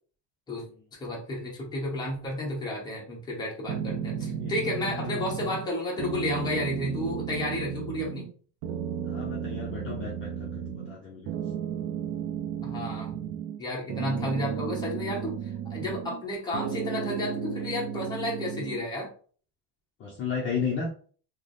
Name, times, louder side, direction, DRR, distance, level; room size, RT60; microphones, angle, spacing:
voice 1, 1.0-8.3 12.6-13.3 13.6-15.3 15.7-19.1, left 1 dB, 10° left, -3 dB, 0.9 m, -32 dB
sound 1, 3.7-5.7 6.0-8.3 8.6-11.0 11.3-13.6 13.9-16.2 16.5-18.9, right 8 dB, 70° right, 0.5 m, -34 dB
voice 2, 4.9-5.4 9.1-11.4 20.0-20.9, left 5 dB, 35° left, -3 dB, 0.6 m, -34 dB
3.3 x 2.1 x 3.8 m, 0.43 s
cardioid pair, 170°, 37 cm